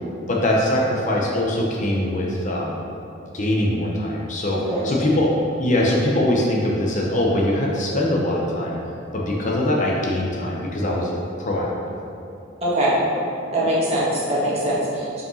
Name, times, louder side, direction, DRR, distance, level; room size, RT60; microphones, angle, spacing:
voice 1, 0.3-2.8 3.3-5.3 5.6-8.8 9.1-11.9, left 1 dB, 35° left, -2 dB, 0.8 m, -22 dB
voice 2, 12.6-13.0 13.5-15.2, right 1 dB, 30° right, -7 dB, 1.7 m, -22 dB
5.6 x 5.0 x 5.5 m, 2.8 s
head